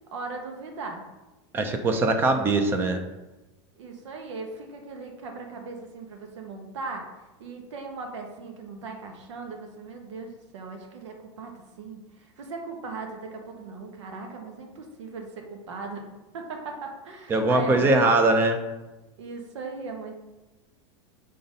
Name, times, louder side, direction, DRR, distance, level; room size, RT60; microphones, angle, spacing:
voice 1, 0.1-1.0 3.8-7.0 7.4-16.0 16.3-18.0 19.2-20.2, right 3 dB, 85° right, 3 dB, 1.5 m, -38 dB
voice 2, 1.5-3.0 17.3-18.6, right 2 dB, 15° right, 6 dB, 0.5 m, -21 dB
5.9 x 3.9 x 5.4 m, 1.1 s
supercardioid pair, 170°, 15 cm